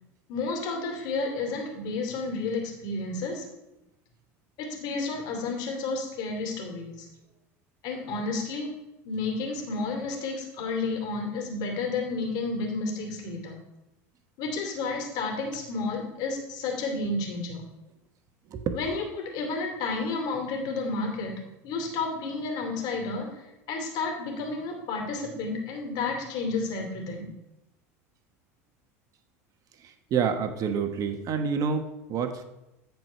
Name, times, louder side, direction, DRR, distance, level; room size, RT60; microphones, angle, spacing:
voice 1, 0.3-3.4 4.6-7.1 7.8-8.7 9.0-13.6 14.4-17.6 18.7-27.3, left 3 dB, 60° left, 3 dB, 2.7 m, -31 dB
voice 2, 29.8-32.4, right 6 dB, 45° right, 7 dB, 1.2 m, -28 dB
13.5 x 4.7 x 5.6 m, 0.95 s
hypercardioid pair, 90°, 8 cm